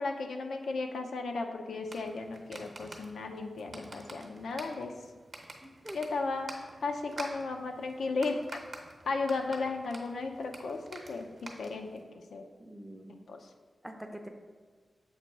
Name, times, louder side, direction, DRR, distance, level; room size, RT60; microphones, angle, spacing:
voice 1, 0.0-4.9 5.9-6.5 6.8-8.6 9.1-11.3 11.6-12.0 12.3-12.4 13.3-13.4, left 3 dB, 80° left, 4 dB, 0.5 m, -35 dB
sound 1, 1.8-12.0, right 2 dB, 50° right, 0.8 m, -49 dB
voice 2, 5.6-6.0 12.6-13.2 13.8-14.3, equal, 5° right, 4 dB, 0.5 m, -45 dB
7.3 x 2.9 x 4.6 m, 1.5 s
wide cardioid pair, 135°, 0 cm